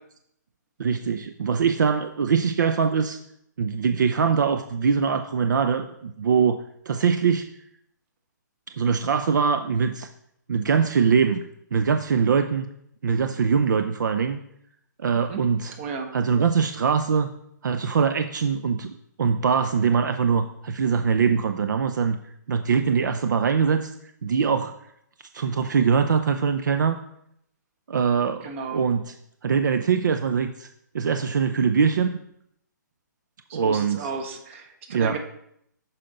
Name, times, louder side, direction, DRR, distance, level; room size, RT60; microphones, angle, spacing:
voice 1, 0.8-3.2 3.6-7.5 8.8-10.1 10.5-11.4 11.7-12.7 13.0-14.4 15.0-15.7 16.1-17.3 17.6-18.9 19.2-22.2 22.5-23.9 24.2-24.7 25.3-27.0 27.9-29.0 29.4-30.7 30.9-32.1 33.5-34.1 34.9-35.2, right 6 dB, 70° right, 8 dB, 0.5 m, -22 dB
voice 2, 15.2-15.5 15.8-16.1 28.4-28.8 33.5-35.2, right 5 dB, 40° right, 5 dB, 1.3 m, -34 dB
9.0 x 5.8 x 3.9 m, 0.74 s
hypercardioid pair, 150°, 10 cm